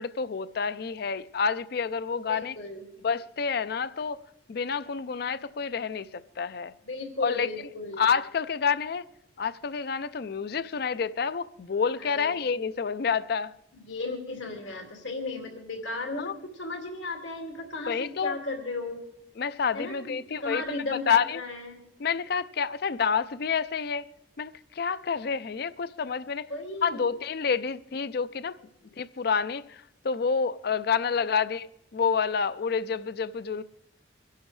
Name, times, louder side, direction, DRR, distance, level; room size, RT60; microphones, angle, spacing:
voice 1, 0.0-2.6 3.0-4.2 4.5-6.7 7.2-7.5 8.0-9.0 9.4-13.5 16.2-16.3 17.9-18.4 19.4-20.6 20.9-21.4 22.0-24.1 24.4-26.5 26.8-28.6 29.0-33.6, left 6 dB, 55° left, 0.4 m, -28 dB
voice 2, 2.3-2.8 6.8-8.0 12.0-12.3 13.8-19.0 19.7-21.8 26.5-27.1 31.2-31.5, left 2 dB, 85° left, 2.3 m, -35 dB
25.5 x 11.5 x 3.2 m
head